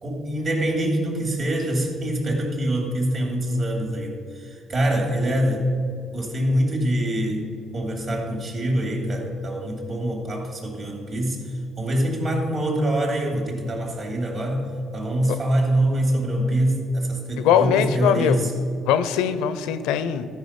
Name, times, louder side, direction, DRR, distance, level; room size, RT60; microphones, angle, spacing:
voice 1, 0.0-5.7 6.1-11.4 11.8-14.7 14.9-18.5, right 1 dB, 55° right, 1 dB, 2.5 m, -24 dB
voice 2, 17.4-18.5 18.9-20.3, left 8 dB, 85° left, 12 dB, 0.5 m, -21 dB
13.0 x 5.0 x 5.8 m, 2.3 s
supercardioid pair, 70°, 0 cm